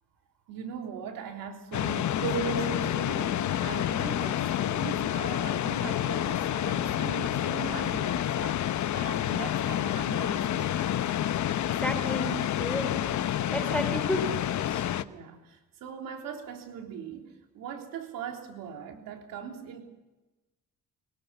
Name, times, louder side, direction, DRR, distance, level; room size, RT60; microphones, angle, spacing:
voice 1, 0.5-8.6 8.9-10.9 15.0-19.8, right 7 dB, 85° right, 3 dB, 3.6 m, -41 dB
sound 1, 1.7-15.0, left 11 dB, 60° left, 1.0 m, -29 dB
sound 2, 2.2-6.2 6.6-6.9, right 3 dB, 65° right, 5.6 m, -38 dB
voice 2, 11.8-13.0 13.5-14.4 14.7-14.9, equal, 5° left, 6 dB, 4.5 m, -32 dB
23.5 x 19.0 x 7.0 m, 1.1 s
cardioid pair, 105°, 33 cm